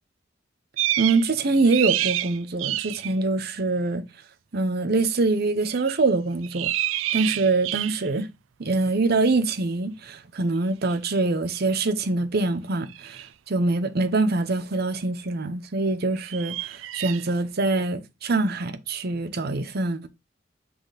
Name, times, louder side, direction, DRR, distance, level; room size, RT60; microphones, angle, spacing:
sound 1, 0.8-1.3 1.6-3.1 5.7-6.0 6.4-8.2 10.9-11.0 12.9-13.3 16.2-17.3, right 14 dB, 90° right, 0.4 m, -28 dB
voice 1, 1.0-4.0 4.5-6.7 7.1-8.3 8.6-20.1, right 3 dB, 55° right, 0.8 m, -24 dB
5.7 x 4.1 x 4.0 m
head